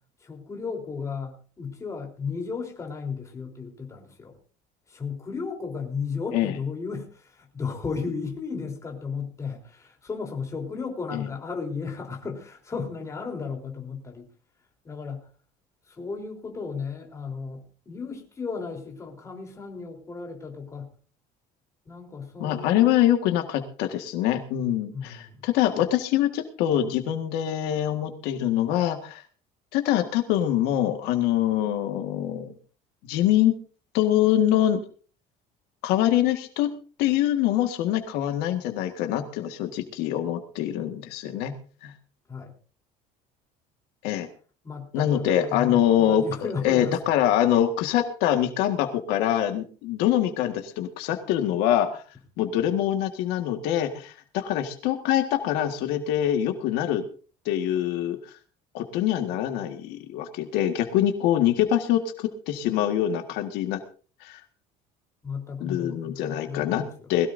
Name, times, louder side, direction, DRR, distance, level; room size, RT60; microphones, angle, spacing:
voice 1, 0.2-4.4 4.9-14.3 14.8-15.3 15.9-20.9 21.9-22.9 24.9-25.5 42.3-42.5 44.6-47.0 65.2-67.1, left 5 dB, 20° left, 1 dB, 3.8 m, -34 dB
voice 2, 22.4-29.2 29.7-32.5 33.1-33.5 33.9-34.8 35.8-36.7 37.0-41.5 41.8-41.9 44.0-44.3 44.9-46.2 46.6-52.0 52.4-57.0 57.4-58.3 58.7-63.8 64.2-64.4 65.6-67.3, left 11 dB, 80° left, 5 dB, 1.8 m, -24 dB
21.0 x 16.5 x 2.7 m, 0.39 s
cardioid pair, 165°, 17 cm